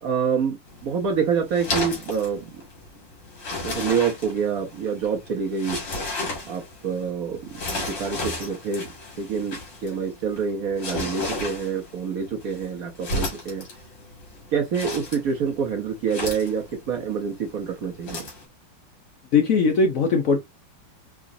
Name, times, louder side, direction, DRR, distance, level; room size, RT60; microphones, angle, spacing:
voice 1, 0.0-2.6 3.6-5.8 6.5-7.6 7.9-13.7 14.5-18.3, right 6 dB, 60° right, 1.0 m, -27 dB
sound 1, 0.7-18.4, left 2 dB, 80° left, 2.5 m, -34 dB
voice 2, 19.3-20.4, left 4 dB, 65° left, 0.9 m, -19 dB
4.8 x 2.4 x 2.5 m
omnidirectional pair, 2.0 m